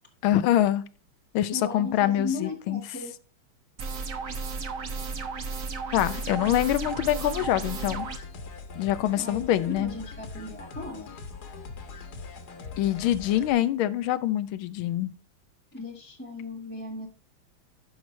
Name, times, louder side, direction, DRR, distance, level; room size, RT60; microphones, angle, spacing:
voice 1, 0.2-0.8 1.3-2.8 5.9-8.1 8.8-9.9 12.8-15.1, left 12 dB, 80° left, 1.5 m, -25 dB
voice 2, 1.5-3.1 9.2-11.1 15.7-17.1, left 2 dB, 5° left, 1.0 m, -36 dB
sound 1, 3.8-8.2, right 4 dB, 45° right, 1.3 m, -34 dB
sound 2, 6.0-13.5, left 4 dB, 55° left, 1.7 m, -42 dB
10.5 x 6.2 x 3.2 m
omnidirectional pair, 2.2 m